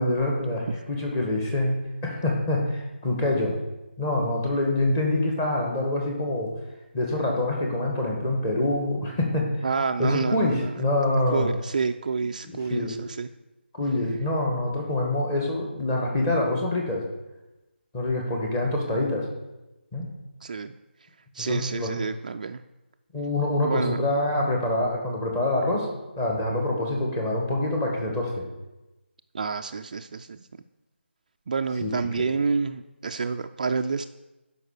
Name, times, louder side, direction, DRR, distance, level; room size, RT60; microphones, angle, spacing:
voice 1, 0.0-1.7 2.0-3.5 4.0-6.5 6.9-9.7 10.0-11.5 12.7-13.0 13.7-17.0 17.9-19.3 19.9-20.1 21.4-22.1 23.1-25.9 26.2-28.4 31.8-32.2, left 1 dB, 15° left, 0 dB, 1.9 m, -25 dB
voice 2, 9.6-10.7 11.3-13.3 20.4-20.7 21.3-22.6 23.6-24.0 29.3-30.5 31.5-34.1, right 5 dB, 40° right, 7 dB, 0.4 m, -28 dB
11.0 x 5.4 x 6.6 m, 1.0 s
figure-of-eight pair, 165°, 6 cm